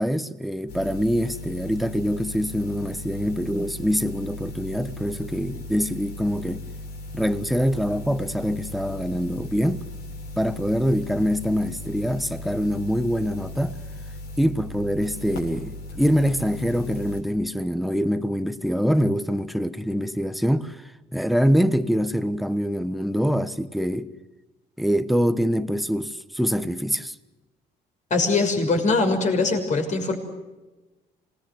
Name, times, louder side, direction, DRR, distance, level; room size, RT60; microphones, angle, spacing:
voice 1, 0.0-6.6 7.1-9.8 10.4-13.8 14.4-20.8 21.1-24.1 24.8-27.1, equal, ahead, 1.2 m, -24 dB
sound 1, 0.7-17.2, left 2 dB, 75° left, 7.9 m, -38 dB
voice 2, 28.1-30.1, left 3 dB, 45° left, 6.1 m, -22 dB
26.5 x 20.5 x 7.9 m
cardioid pair, 110°, 17 cm